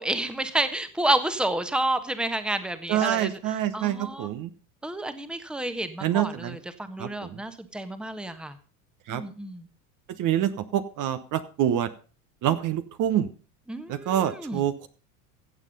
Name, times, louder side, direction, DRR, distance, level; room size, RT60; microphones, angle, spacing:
voice 1, 0.0-4.3 4.8-6.6 6.9-8.5 9.1-9.7 13.7-14.6, right 1 dB, ahead, 10 dB, 1.3 m, -30 dB
voice 2, 2.9-4.5 6.0-6.6 7.0-7.3 9.1-9.2 10.2-11.9 12.4-13.3 13.9-14.9, right 11 dB, 45° right, 11 dB, 1.2 m, -26 dB
15.5 x 7.4 x 5.4 m, 0.37 s
hypercardioid pair, 90°, 43 cm